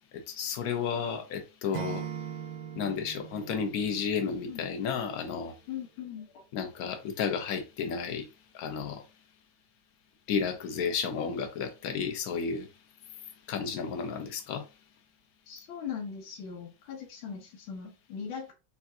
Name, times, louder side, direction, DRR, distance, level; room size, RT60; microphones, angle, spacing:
voice 1, 0.3-2.0 2.8-5.5 6.5-8.3 8.5-9.0 10.3-12.7 13.5-14.6, left 6 dB, 60° left, 1.1 m, -32 dB
Acoustic guitar / Strum, 1.7-4.8, right 9 dB, 75° right, 1.4 m, -40 dB
voice 2, 5.7-6.4 15.5-18.5, left 7 dB, 80° left, 1.8 m, -40 dB
7.0 x 2.4 x 2.7 m
omnidirectional pair, 2.2 m